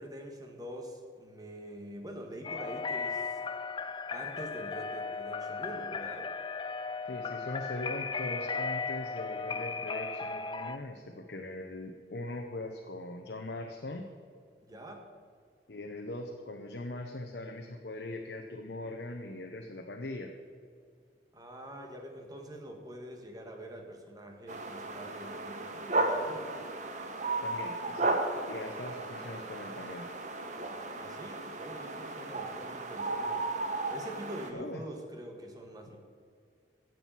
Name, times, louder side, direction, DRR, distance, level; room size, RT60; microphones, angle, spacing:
voice 1, 0.0-3.5 4.1-6.3 14.6-15.1 21.3-26.5 31.0-33.5 33.9-36.0, right 1 dB, 20° right, 3 dB, 1.7 m, -45 dB
Creepy Lullaby A, 2.4-10.8, left 4 dB, 30° left, 0.5 m, -36 dB
voice 2, 7.1-14.1 15.7-20.3 27.4-28.2 28.5-30.1 34.5-34.8, left 2 dB, 65° left, 3 dB, 1.0 m, -41 dB
Alone In The Wild, 24.5-34.5, right 2 dB, 45° right, 1.1 m, -34 dB
17.0 x 7.8 x 5.7 m, 2.2 s
head